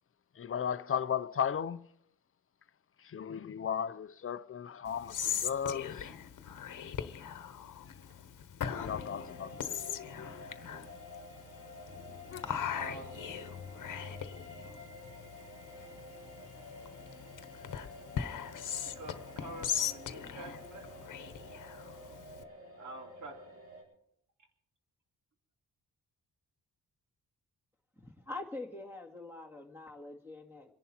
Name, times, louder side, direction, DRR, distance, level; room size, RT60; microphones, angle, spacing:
voice 1, 0.4-1.9 3.0-6.1 8.6-10.8 12.0-12.5, left 8 dB, 40° left, 0.6 m, -36 dB
Whispering, 4.9-22.4, left 8 dB, 60° left, 1.1 m, -40 dB
sound 1, 8.6-23.8, left 1 dB, 85° right, 7.2 m, -50 dB
voice 2, 12.7-13.3 19.0-20.9 22.8-23.3 24.4-24.5, right 2 dB, 55° right, 2.8 m, -47 dB
voice 3, 28.0-30.7, left 2 dB, 5° right, 2.1 m, -44 dB
28.0 x 11.0 x 4.3 m
wide cardioid pair, 150°, 36 cm